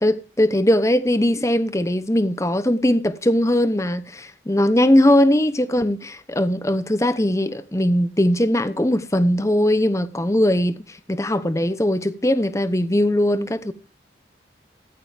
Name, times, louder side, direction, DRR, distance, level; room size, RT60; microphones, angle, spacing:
voice 1, 0.0-13.7, left 1 dB, 15° left, 0.9 m, -20 dB
14.5 x 14.0 x 3.5 m
head